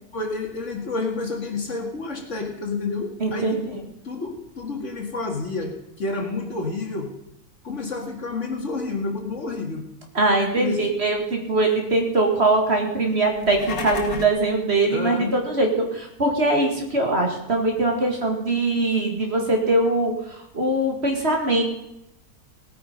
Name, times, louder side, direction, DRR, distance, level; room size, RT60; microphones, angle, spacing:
voice 1, 0.1-7.1 7.6-9.9 10.5-10.9 14.9-15.3, left 3 dB, 50° left, 3 dB, 2.1 m, -29 dB
voice 2, 3.2-3.6 10.1-21.6, right 2 dB, 45° right, 2 dB, 2.3 m, -22 dB
sound 1, 13.3-14.4, left 4 dB, 65° left, 1.9 m, -32 dB
18.0 x 9.2 x 5.3 m, 0.83 s
omnidirectional pair, 1.6 m